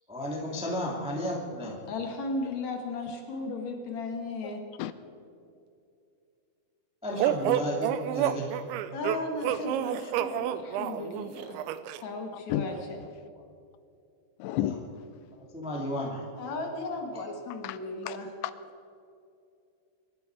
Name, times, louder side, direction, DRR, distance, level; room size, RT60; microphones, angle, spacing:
voice 1, 0.1-1.8 7.0-8.6 15.5-16.2, equal, 5° right, 0.4 m, -33 dB
voice 2, 1.9-4.6 8.9-11.6 12.0-12.7 16.3-18.3, left 2 dB, 65° left, 1.8 m, -35 dB
sound 1, 7.2-12.0, right 11 dB, 90° right, 3.0 m, -29 dB
voice 3, 12.3-13.1 14.4-15.0 17.6-17.8 18.0-18.2 18.4-18.5, left 12 dB, 85° left, 2.8 m, -33 dB
25.0 x 12.0 x 4.7 m
omnidirectional pair, 5.2 m